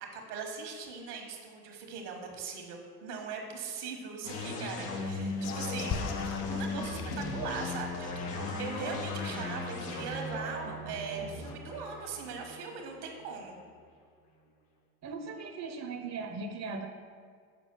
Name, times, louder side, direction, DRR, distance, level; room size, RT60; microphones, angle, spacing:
voice 1, 0.0-6.0 6.5-13.6, right 5 dB, 80° right, 3 dB, 1.4 m, -40 dB
sound 1, 4.2-13.7, left 3 dB, 80° left, 1.3 m, -37 dB
sound 2, 5.0-8.5 11.3-11.6, left 8 dB, 60° left, 0.8 m, -48 dB
sound 3, 5.9-10.3, left 5 dB, 30° left, 0.6 m, -42 dB
voice 2, 15.0-16.9, right 4 dB, 35° right, 6 dB, 0.7 m, -38 dB
6.7 x 5.1 x 5.3 m, 2.1 s
hypercardioid pair, 65°, 45 cm